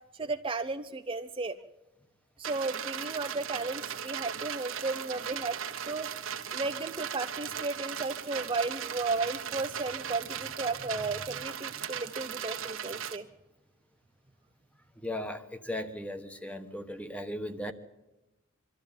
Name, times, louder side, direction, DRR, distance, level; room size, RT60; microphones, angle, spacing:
voice 1, 0.1-1.6 2.4-5.6 5.9-6.1 6.5-13.3, right 3 dB, 25° right, 7 dB, 0.6 m, -34 dB
sound 1, 2.4-13.2, right 8 dB, 70° right, 1.5 m, -38 dB
voice 2, 15.0-17.7, left 1 dB, 5° left, 8 dB, 1.2 m, -37 dB
24.5 x 13.5 x 8.9 m, 1.0 s
head